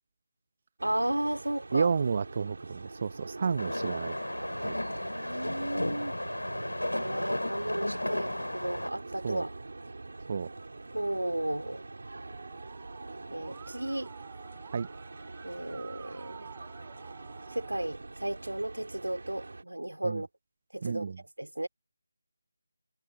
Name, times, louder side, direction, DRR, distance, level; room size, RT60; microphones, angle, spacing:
sound 1, 0.8-19.6, right 3 dB, 60° right, 4.0 m, -44 dB
voice 1, 0.8-1.9 5.0-6.2 6.9-9.6 10.9-11.8 13.3-14.1 15.4-16.5 17.5-20.3 20.7-21.1 21.4-21.7, right 1 dB, 80° right, 3.9 m, -34 dB
voice 2, 1.7-4.1 4.6-4.7 9.2-9.4 10.3-10.5 14.7-14.9 20.0-20.2 20.8-21.2, right 5 dB, 35° right, 0.8 m, -31 dB
sound 2, 3.6-8.9, left 1 dB, 80° left, 5.4 m, -34 dB
Musical instrument, 12.3-17.8, right 17 dB, 15° right, 3.1 m, -53 dB
figure-of-eight pair, 160°, 0 cm